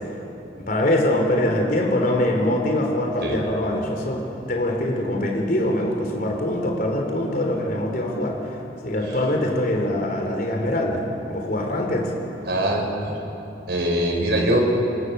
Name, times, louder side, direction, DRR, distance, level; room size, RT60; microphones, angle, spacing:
voice 1, 0.7-8.6 8.8-11.0 11.3-12.1, left 1 dB, 50° left, 1 dB, 4.0 m, -23 dB
voice 2, 12.5-13.1 13.7-14.6, right 1 dB, 60° right, 0 dB, 5.2 m, -22 dB
26.5 x 26.0 x 7.1 m, 2.9 s
head